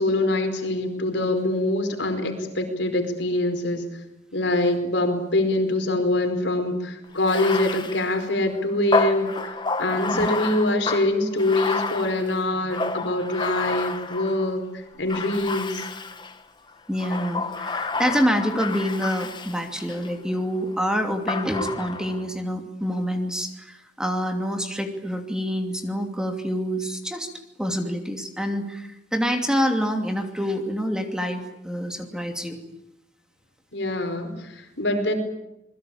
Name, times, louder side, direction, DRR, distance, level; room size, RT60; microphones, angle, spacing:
voice 1, 0.0-3.9 4.3-15.8 33.7-35.1, left 1 dB, 75° left, 6 dB, 4.8 m, -24 dB
Bathtub (filling or washing), 7.2-14.5 15.1-16.4 16.9-20.1 21.3-22.2, left 3 dB, 25° left, 1.4 m, -30 dB
voice 2, 16.9-27.3 27.6-32.6, equal, 5° right, 4 dB, 2.7 m, -27 dB
27.5 x 21.0 x 8.8 m, 0.86 s
head